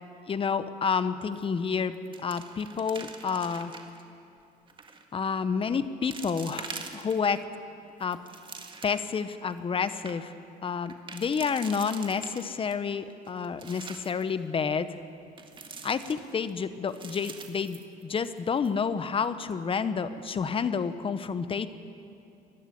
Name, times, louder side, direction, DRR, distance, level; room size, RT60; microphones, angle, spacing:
voice 1, 0.3-1.9 2.2-3.7 5.1-7.4 8.0-8.2 8.8-10.3 10.6-15.0 15.8-21.7, left 6 dB, 30° left, 12 dB, 1.0 m, -29 dB
sound 1, 1.3-1.7 1.9-4.0 4.7-5.0 5.6-5.7 6.1-7.4 7.9-9.2 9.6-9.7 9.9-10.1 10.9-12.8 13.2-14.2 15.4-16.5 16.9-18.4 18.6-18.7 19.2-19.5, right 4 dB, 30° right, 1.8 m, -44 dB
22.0 x 12.0 x 9.8 m, 2.7 s
cardioid pair, 110°, 17 cm